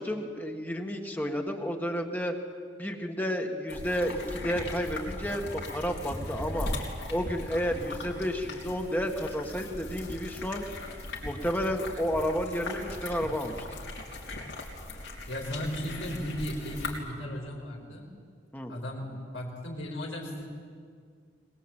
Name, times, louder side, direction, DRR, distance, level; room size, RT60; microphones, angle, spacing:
voice 1, 0.0-2.3 2.8-6.7 7.1-10.6 11.2-13.6 18.5-18.7, equal, 10° left, 3 dB, 1.7 m, -31 dB
sound 1, 3.7-17.0, left 2 dB, 65° left, 4.0 m, -39 dB
voice 2, 15.3-18.1 18.7-20.5, equal, 80° left, -2 dB, 4.4 m, -36 dB
21.5 x 21.5 x 9.0 m, 2.1 s
head